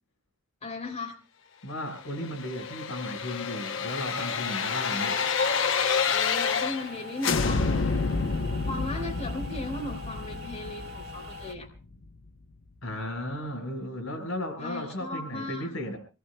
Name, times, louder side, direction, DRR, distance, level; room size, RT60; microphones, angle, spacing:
voice 1, 0.6-1.2 6.1-8.0 8.7-11.7 14.6-15.7, left 2 dB, 30° left, 1 dB, 3.1 m, -37 dB
voice 2, 1.6-5.1 12.8-16.0, left 1 dB, 90° left, 6 dB, 4.3 m, -35 dB
sound 1, 2.2-6.9 7.2-12.1 12.4-12.5, left 5 dB, 65° left, 0.8 m, -29 dB
sound 2, 3.9-11.6, left 2 dB, 55° right, 1.6 m, -43 dB
26.5 x 19.5 x 2.2 m, 0.32 s
head